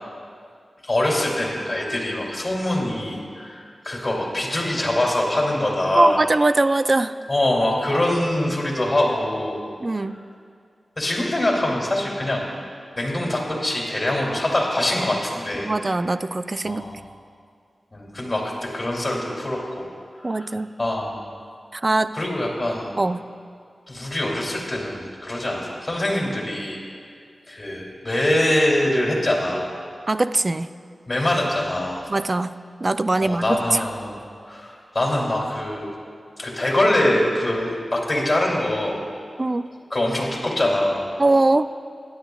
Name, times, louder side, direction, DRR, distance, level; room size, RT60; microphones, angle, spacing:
voice 1, 0.8-6.2 7.3-9.6 11.0-12.5 12.9-15.7 16.6-17.0 17.9-19.8 20.2-21.2 22.1-22.9 23.9-26.8 27.5-29.7 31.1-32.1 33.2-34.2 34.4-35.9 36.4-39.0 39.9-41.0, left 1 dB, 35° left, -3 dB, 2.6 m, -24 dB
voice 2, 5.9-7.1 9.8-10.2 15.6-16.9 20.2-20.7 21.7-22.1 23.0-23.3 30.1-30.7 32.1-33.4 33.7-33.8 39.4-39.7 41.2-41.7, right 2 dB, 40° right, 12 dB, 0.3 m, -21 dB
16.5 x 10.0 x 2.3 m, 2.2 s
wide cardioid pair, 60°, 0 cm